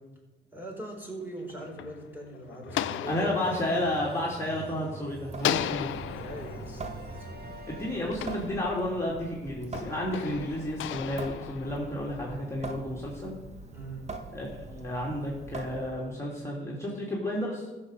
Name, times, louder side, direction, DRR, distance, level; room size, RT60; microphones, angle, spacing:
voice 1, 0.5-3.8 6.0-7.4 13.7-14.1, right 1 dB, 10° right, -1 dB, 4.4 m, -41 dB
sound 1, 1.2-4.9 5.4-9.1 9.7-12.4, left 12 dB, 75° left, 0.6 m, -37 dB
sound 2, 2.7-8.3, right 1 dB, 50° right, 2.4 m, -45 dB
voice 2, 3.1-5.9 7.6-13.3 14.3-17.7, left 1 dB, 15° left, -5 dB, 3.2 m, -32 dB
Water tap faucet / Sink (filling or washing) / Drip, 5.3-16.2, right 3 dB, 35° right, 1.6 m, -43 dB
14.0 x 7.0 x 6.7 m, 1.1 s
cardioid pair, 90°, 20 cm